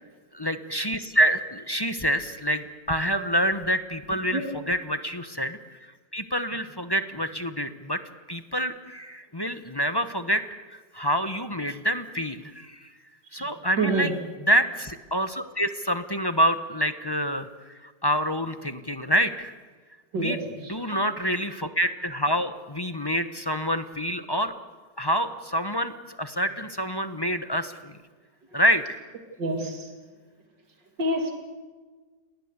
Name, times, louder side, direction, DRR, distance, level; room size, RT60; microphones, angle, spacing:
voice 1, 0.3-5.6 6.1-8.0 8.3-10.4 10.9-12.9 13.3-14.1 14.5-17.5 17.8-19.5 20.2-20.4 20.7-24.5 25.0-28.0 28.5-28.8, equal, 20° left, 9 dB, 0.8 m, -27 dB
voice 2, 13.8-14.1 20.1-20.7 29.4-29.9 31.0-31.3, right 2 dB, 75° right, 3 dB, 3.2 m, -27 dB
29.5 x 19.0 x 8.2 m, 1.4 s
omnidirectional pair, 1.9 m